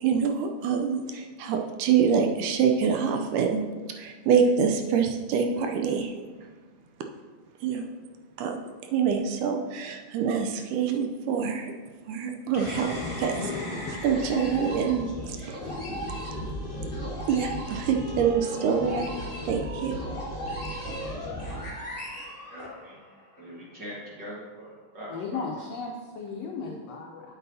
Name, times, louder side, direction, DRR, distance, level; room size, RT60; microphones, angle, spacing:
voice 1, 0.0-3.6 3.9-6.3 7.6-7.9 8.4-8.6 8.9-11.7 12.1-13.5 13.9-15.6 17.3-19.1 19.5-20.0, right 6 dB, 80° right, 4 dB, 2.0 m, -26 dB
sound 1, 12.5-23.2, equal, 25° left, 0.7 m, -35 dB
voice 2, 22.1-23.0 23.4-25.5, equal, 50° right, -6 dB, 1.3 m, -42 dB
voice 3, 25.1-27.3, left 4 dB, 80° left, 0 dB, 1.4 m, -35 dB
8.3 x 8.3 x 2.7 m, 1.4 s
omnidirectional pair, 3.8 m